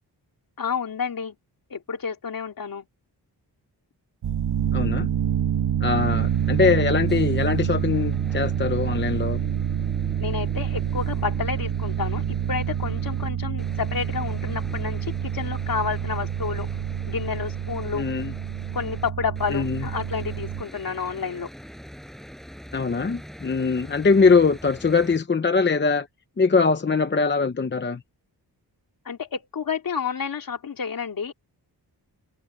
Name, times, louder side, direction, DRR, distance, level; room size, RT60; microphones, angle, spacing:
voice 1, 0.6-1.4 1.7-2.9 10.2-16.7 17.1-18.1 18.7-21.5 29.0-31.3, left 6 dB, 55° left, 2.9 m, -30 dB
sound 1, 4.2-20.6, right 9 dB, 90° right, 1.4 m, -27 dB
voice 2, 4.7-5.1 5.8-9.4 17.9-18.3 19.5-19.8 22.7-26.1 26.4-28.0, left 4 dB, 30° left, 0.8 m, -22 dB
sound 2, 5.9-13.3 13.6-19.1 19.4-25.2, equal, ahead, 7.0 m, -44 dB
wide cardioid pair, 155°, 40 cm